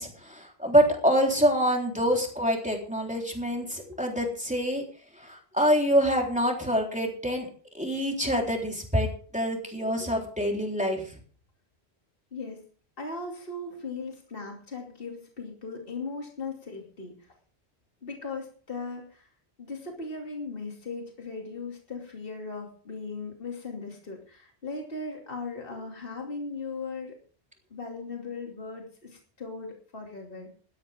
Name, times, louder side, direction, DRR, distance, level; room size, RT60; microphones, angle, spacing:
voice 1, 0.0-4.8 5.2-7.5 7.7-11.0, equal, 5° right, 0 dB, 3.7 m, -26 dB
voice 2, 12.3-12.6 13.0-17.3 18.0-19.3 19.6-27.2 27.7-30.5, left 3 dB, 55° left, 1 dB, 2.9 m, -38 dB
17.0 x 13.0 x 3.6 m, 0.42 s
omnidirectional pair, 1.1 m